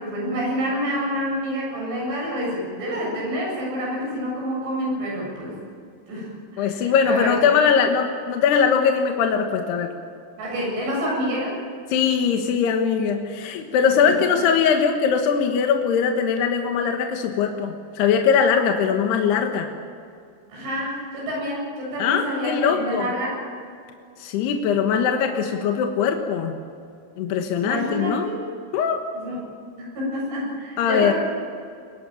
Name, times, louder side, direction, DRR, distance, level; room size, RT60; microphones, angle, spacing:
voice 1, 0.0-5.5 6.1-7.4 10.4-11.5 13.8-14.1 20.5-23.4 27.6-28.4 29.1-29.4 29.8-31.2, equal, 80° right, -4 dB, 10.0 m, -28 dB
voice 2, 6.6-9.9 11.9-19.7 22.0-23.1 24.2-26.5 27.2-28.3 28.7-29.0 30.8-31.1, left 7 dB, 70° left, 4 dB, 3.2 m, -21 dB
23.0 x 19.5 x 9.0 m, 2.4 s
omnidirectional pair, 5.4 m